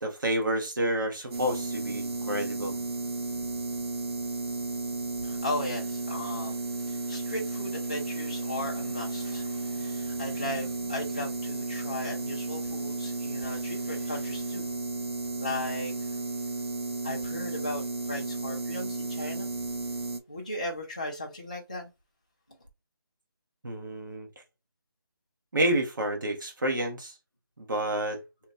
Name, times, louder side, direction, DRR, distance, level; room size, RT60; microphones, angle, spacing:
voice 1, 0.0-2.8 23.6-24.3 25.5-27.1 27.6-28.2, right 1 dB, 50° right, 1.1 m, -29 dB
sound 1, 1.3-20.2, right 3 dB, 90° right, 0.6 m, -33 dB
voice 2, 5.2-14.7 15.4-16.2 17.0-19.5 20.3-21.9, left 1 dB, 15° left, 0.3 m, -37 dB
2.9 x 2.2 x 3.7 m
figure-of-eight pair, 175°, 13 cm